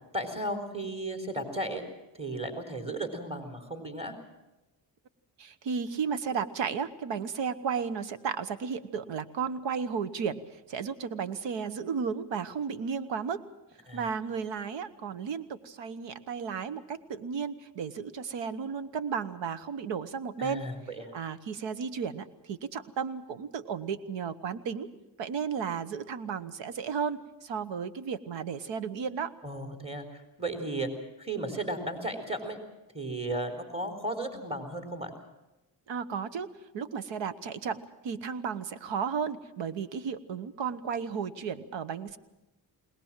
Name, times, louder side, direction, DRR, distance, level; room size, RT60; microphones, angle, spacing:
voice 1, 0.1-1.8 2.2-4.2 13.9-14.1 20.4-21.1 29.4-30.9 31.2-32.6 32.9-35.1, right 1 dB, 15° right, 5 dB, 4.0 m, -35 dB
voice 2, 5.4-10.4 10.7-13.4 13.9-20.6 21.1-24.9 25.2-29.3 35.9-36.5 36.7-42.2, right 6 dB, 85° right, 14 dB, 1.2 m, -34 dB
21.5 x 19.5 x 7.5 m, 0.99 s
cardioid pair, 80°, 43 cm